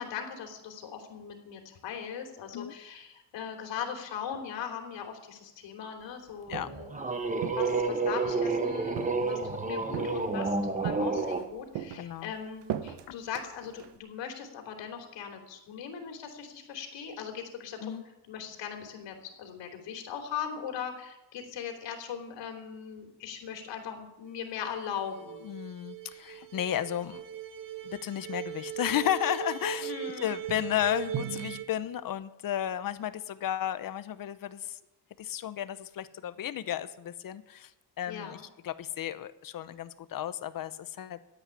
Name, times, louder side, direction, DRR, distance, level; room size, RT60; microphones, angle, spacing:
voice 1, 0.0-7.0 7.3-18.0 18.3-25.5 29.8-30.3 38.1-38.4, left 7 dB, 80° left, 4 dB, 3.4 m, -39 dB
Walk footsteps, 6.3-6.9 7.4-8.4 9.0-9.5 9.9-10.5 10.8-11.4 11.7-14.0, right 10 dB, 70° right, 1.2 m, -39 dB
sound 1, 6.6-11.5, right 3 dB, 15° right, 1.2 m, -30 dB
voice 2, 12.0-12.3 13.1-13.2 17.8-18.0 25.4-27.2 27.8-34.8 35.2-41.2, left 11 dB, 50° left, 14 dB, 0.9 m, -33 dB
sound 2, 24.3-24.4 24.6-24.7 25.0-31.6, right 9 dB, 50° right, 1.2 m, -39 dB
13.5 x 8.9 x 9.7 m, 0.94 s
cardioid pair, 145°, 43 cm